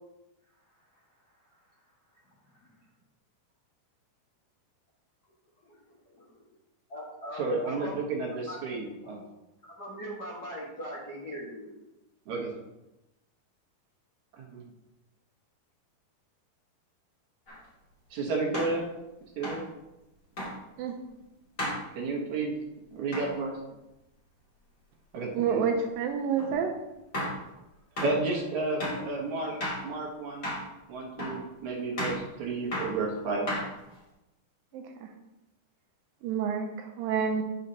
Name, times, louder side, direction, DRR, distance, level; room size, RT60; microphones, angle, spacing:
voice 1, 5.7-6.3 6.9-8.0 8.5-8.6 9.0-9.2 9.6-11.7 29.4-29.6 31.2-31.3, equal, 80° left, -5 dB, 0.9 m, -41 dB
voice 2, 7.3-9.2 12.3-12.5 14.3-14.7 18.1-18.9 19.4-19.6 22.0-22.6 22.9-23.6 25.1-25.7 26.5-26.7 28.0-29.5 29.8-30.5 30.9-33.5, right 3 dB, 60° right, -1 dB, 2.3 m, -32 dB
sound 1, 17.5-17.6 18.5-18.8 19.4-19.7 20.4-20.6 21.6-21.8 23.1-23.3 26.4-26.5 27.1-27.4 28.0-28.2 28.8-29.1 29.6-29.9 30.4-30.7 31.2-31.4 32.0-32.2 32.7-33.0 33.5-34.0, left 1 dB, 25° left, 2.3 m, -33 dB
voice 3, 25.4-26.7 34.7-34.8 36.2-37.4, right 6 dB, 80° right, 5 dB, 2.3 m, -28 dB
9.7 x 6.5 x 2.8 m, 0.96 s
omnidirectional pair, 4.3 m